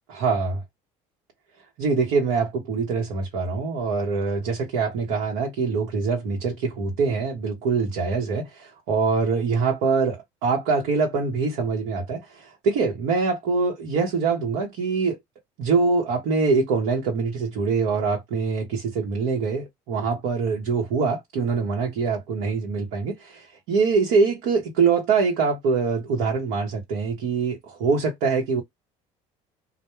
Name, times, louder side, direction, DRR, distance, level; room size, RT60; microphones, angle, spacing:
voice 1, 0.1-0.6 1.8-15.2 15.6-28.6, right 4 dB, 75° right, 1.0 m, -24 dB
2.2 x 2.1 x 2.9 m
supercardioid pair, 100°, 16 cm